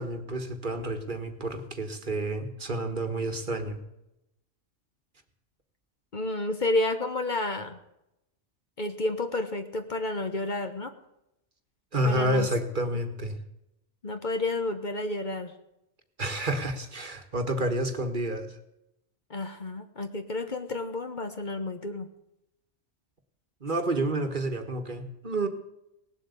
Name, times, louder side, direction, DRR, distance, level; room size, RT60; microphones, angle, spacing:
voice 1, 0.0-3.8 11.9-13.4 16.2-18.6 23.6-25.5, right 1 dB, 45° right, 6 dB, 1.6 m, -29 dB
voice 2, 6.1-7.8 8.8-10.9 12.0-12.5 14.0-15.5 19.3-22.1, left 2 dB, 45° left, 7 dB, 1.2 m, -30 dB
18.0 x 7.9 x 8.3 m, 0.86 s
omnidirectional pair, 1.2 m